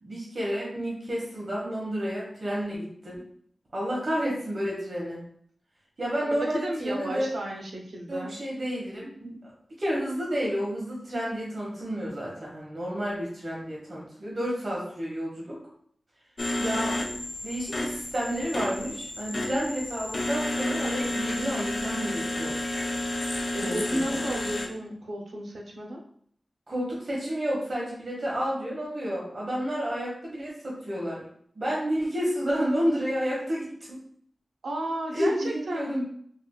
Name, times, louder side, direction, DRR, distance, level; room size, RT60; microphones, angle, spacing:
voice 1, 0.0-3.2 3.7-5.2 6.0-7.3 8.1-15.6 16.6-17.0 17.4-22.9 23.6-24.2 26.7-31.2 31.5-34.0 35.1-36.0, equal, 50° right, -5 dB, 1.1 m, -30 dB
voice 2, 6.4-8.3 23.5-26.0 34.6-36.0, right 1 dB, 85° right, 0 dB, 0.7 m, -33 dB
sound 1, 16.4-24.7, left 1 dB, 50° left, 0.5 m, -31 dB
4.6 x 2.4 x 2.2 m, 0.62 s
wide cardioid pair, 70°, 0 cm